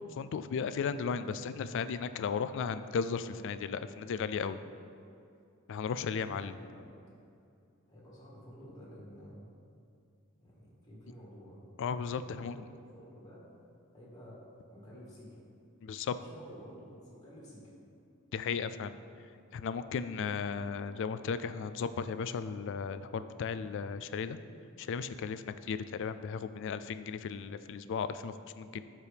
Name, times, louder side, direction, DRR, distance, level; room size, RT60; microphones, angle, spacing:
voice 1, 0.2-4.6 5.7-6.6 11.8-12.7 15.8-16.1 18.3-19.0 19.5-24.4 24.8-28.8, left 6 dB, 60° left, 13 dB, 0.3 m, -35 dB
voice 2, 6.1-6.9 7.9-9.4 10.4-11.6 12.1-13.5 13.9-14.4 14.7-15.4 16.1-17.7, equal, 20° left, -6 dB, 1.8 m, -52 dB
13.0 x 4.5 x 3.4 m, 2.5 s
head